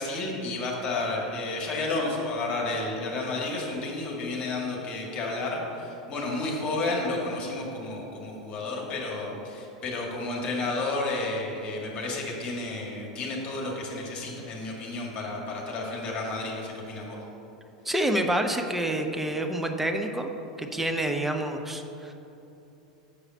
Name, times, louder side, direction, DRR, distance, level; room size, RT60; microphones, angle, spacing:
voice 1, 0.0-17.2, left 2 dB, 35° left, -1 dB, 1.9 m, -31 dB
voice 2, 17.8-20.3 20.6-22.1, right 1 dB, 5° right, 4 dB, 0.6 m, -28 dB
7.1 x 4.9 x 6.3 m, 3.0 s
figure-of-eight pair, 85°, 4 cm